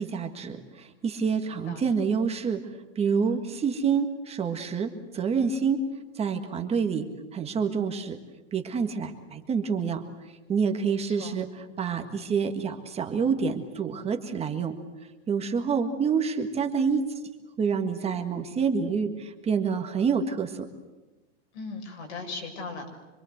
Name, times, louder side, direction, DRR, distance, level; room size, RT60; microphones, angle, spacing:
voice 1, 0.0-5.8 6.1-7.1 7.3-8.2 8.5-10.1 10.5-14.8 15.3-17.1 17.6-20.7, right 6 dB, 15° right, 6 dB, 1.7 m, -27 dB
voice 2, 21.5-23.0, left 3 dB, 65° left, 3 dB, 6.8 m, -38 dB
26.0 x 23.5 x 8.0 m, 1.1 s
supercardioid pair, 155°, 36 cm